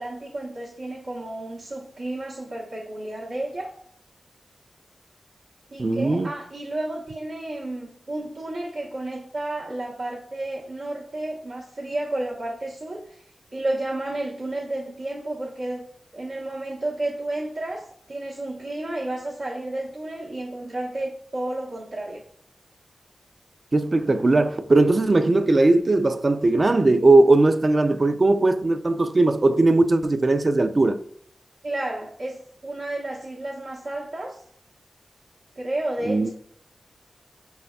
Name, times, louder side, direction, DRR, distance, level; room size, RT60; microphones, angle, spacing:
voice 1, 0.0-3.7 5.7-13.2 13.5-15.9 16.1-22.2 31.6-34.4 35.5-36.3, right 1 dB, 85° right, 1.0 m, -31 dB
voice 2, 5.8-6.3 23.7-31.0 36.1-36.3, right 2 dB, 45° right, 0.3 m, -19 dB
5.3 x 3.4 x 2.2 m
cardioid pair, 50°, 0 cm